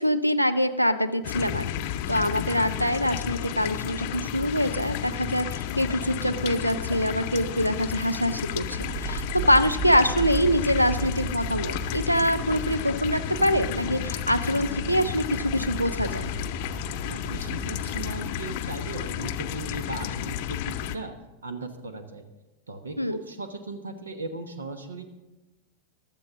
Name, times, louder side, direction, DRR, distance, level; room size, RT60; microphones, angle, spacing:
voice 1, 0.0-1.7 2.1-16.3 23.0-23.2, equal, 90° right, 13 dB, 0.6 m, -24 dB
sound 1, 1.2-21.0, left 11 dB, 50° left, 0.6 m, -32 dB
sound 2, 8.5-19.2, right 5 dB, 45° right, 3.6 m, -37 dB
voice 2, 17.1-21.1 21.4-22.2 22.7-25.1, right 3 dB, 70° right, 9 dB, 1.1 m, -37 dB
15.5 x 12.0 x 3.7 m, 1.1 s
figure-of-eight pair, 90°, 0 cm